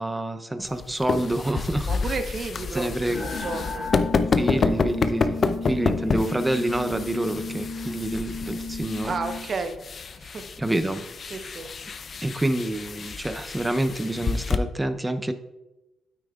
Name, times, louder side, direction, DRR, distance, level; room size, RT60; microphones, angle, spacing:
voice 1, 0.0-1.9 2.7-3.2 4.3-9.1 10.6-11.0 12.2-15.3, right 1 dB, 10° right, 10 dB, 0.6 m, -27 dB
sound 1, 0.6-14.6, left 4 dB, 45° left, 0.5 m, -29 dB
voice 2, 1.9-3.9 5.6-6.2 9.0-9.8 10.1-10.5 11.3-11.7, right 4 dB, 45° right, 7 dB, 1.0 m, -33 dB
sound 2, 3.1-9.5, left 3 dB, 60° left, 1.7 m, -34 dB
9.0 x 8.7 x 2.4 m, 1.0 s
cardioid pair, 90°, 0 cm